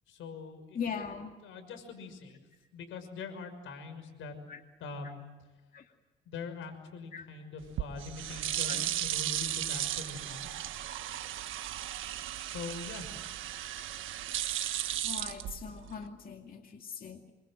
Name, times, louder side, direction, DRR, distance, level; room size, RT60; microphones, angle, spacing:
voice 1, 0.1-1.0 1.4-2.4 2.7-4.3 4.8-5.2 6.3-10.5 12.4-13.1, left 4 dB, 85° left, 8 dB, 6.0 m, -43 dB
voice 2, 0.7-1.3 4.5-4.6 5.7-5.9 7.1-7.3 8.7-8.9 11.1-11.2 13.8-13.9 15.0-17.3, left 6 dB, 45° left, 4 dB, 2.3 m, -40 dB
Torneira de água, 7.6-16.1, right 12 dB, 80° right, 1.5 m, -35 dB
27.5 x 24.5 x 7.8 m, 1.2 s
cardioid pair, 90°, 20 cm